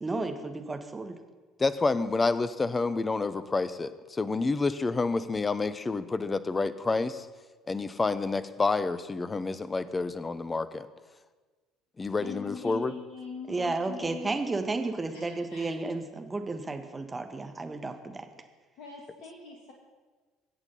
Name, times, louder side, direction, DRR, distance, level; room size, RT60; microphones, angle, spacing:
voice 1, 0.0-1.1 12.2-12.3 13.5-18.3, right 3 dB, 20° right, 6 dB, 1.6 m, -33 dB
voice 2, 1.6-7.3 7.7-10.9 12.0-12.9, left 3 dB, 20° left, 14 dB, 0.8 m, -29 dB
voice 3, 12.2-14.3 15.1-15.8 18.8-19.7, left 4 dB, 55° left, 0 dB, 1.9 m, -42 dB
22.5 x 8.3 x 5.7 m, 1.4 s
figure-of-eight pair, 60°, 0 cm